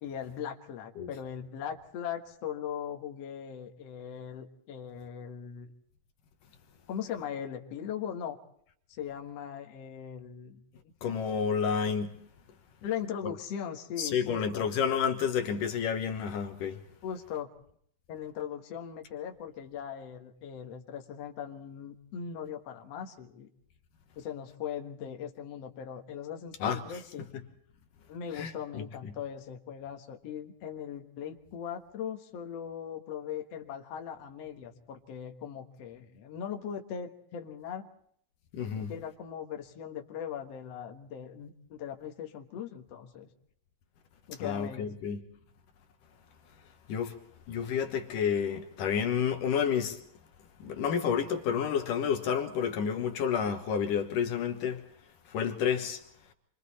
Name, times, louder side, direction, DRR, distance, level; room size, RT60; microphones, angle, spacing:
voice 1, 0.0-5.7 6.9-8.4 9.0-10.6 12.8-14.7 17.0-17.5 18.1-23.5 24.2-27.3 28.1-37.9 38.8-43.3 44.3-44.9, left 8 dB, 55° left, 2.2 m, -39 dB
voice 2, 11.0-12.1 13.2-13.3 14.0-16.8 26.6-26.8 28.3-28.8 38.5-38.9 44.4-45.2 46.9-47.2 47.5-50.0 50.6-54.8 55.3-56.0, left 7 dB, 70° left, 2.7 m, -30 dB
28.0 x 23.5 x 4.2 m
omnidirectional pair, 4.1 m